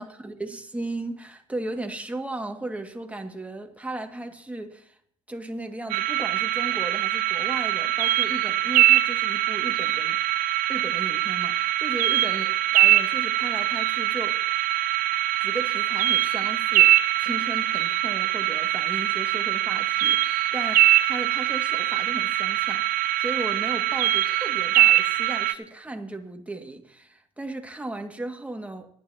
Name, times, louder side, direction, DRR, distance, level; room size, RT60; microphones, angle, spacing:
voice 1, 0.0-5.0 5.3-10.2 10.7-14.4 15.4-28.9, right 2 dB, 10° right, 2.2 m, -36 dB
sound 1, 5.9-25.5, right 14 dB, 60° right, 0.8 m, -23 dB
24.0 x 9.7 x 3.0 m
hypercardioid pair, 70°, 16 cm